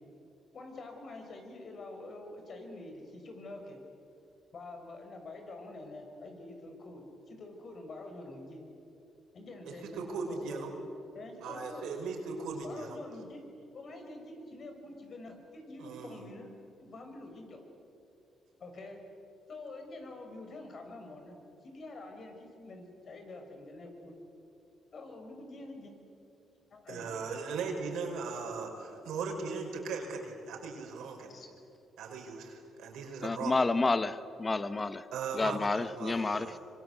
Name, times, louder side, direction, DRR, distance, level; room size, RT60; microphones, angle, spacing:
voice 1, 0.5-3.8 4.5-8.6 9.3-10.8 11.1-11.9 12.6-13.4 13.7-16.5 16.8-17.6 18.6-19.0 19.5-21.4 21.6-24.1 24.9-26.0 26.7-27.1 31.3-31.5, left 2 dB, 50° left, 4 dB, 5.8 m, -46 dB
voice 2, 9.7-10.7 11.4-13.0 15.8-16.2 26.9-31.3 32.0-33.6 35.1-36.6, right 4 dB, 80° right, 2 dB, 5.4 m, -38 dB
voice 3, 33.2-35.0 35.4-36.6, left 3 dB, 25° left, 13 dB, 1.0 m, -30 dB
25.5 x 25.0 x 8.2 m, 2.7 s
cardioid pair, 90°, 0 cm